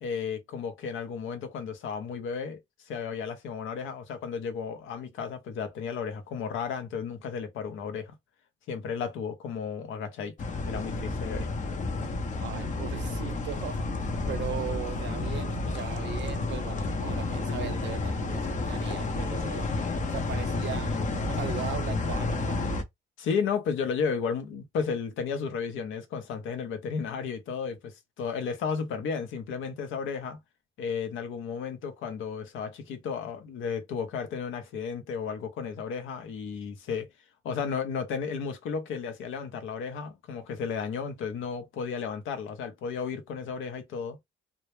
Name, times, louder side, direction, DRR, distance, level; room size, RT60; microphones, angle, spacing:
voice 1, 0.0-2.6 2.9-8.1 8.7-10.3 10.7-11.5 23.2-30.4 30.8-37.1 37.4-44.2, left 6 dB, 85° left, 0.6 m, -33 dB
sound 1, 10.4-22.8, left 3 dB, 40° left, 0.6 m, -31 dB
voice 2, 12.4-19.7 20.1-22.6, right 10 dB, 65° right, 0.5 m, -38 dB
2.1 x 2.0 x 3.0 m
cardioid pair, 90°, 20 cm